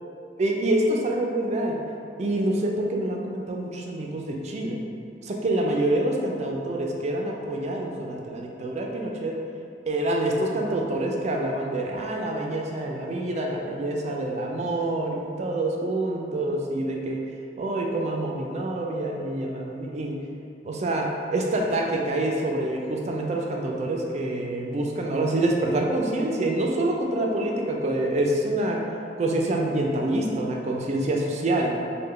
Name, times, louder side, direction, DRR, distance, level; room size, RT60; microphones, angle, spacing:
voice 1, 0.4-1.8 2.2-4.8 5.2-9.4 9.9-17.2 17.6-20.2 20.6-28.9 29.2-31.7, right 1 dB, 40° right, 0 dB, 0.3 m, -26 dB
3.2 x 2.1 x 3.6 m, 2.4 s
head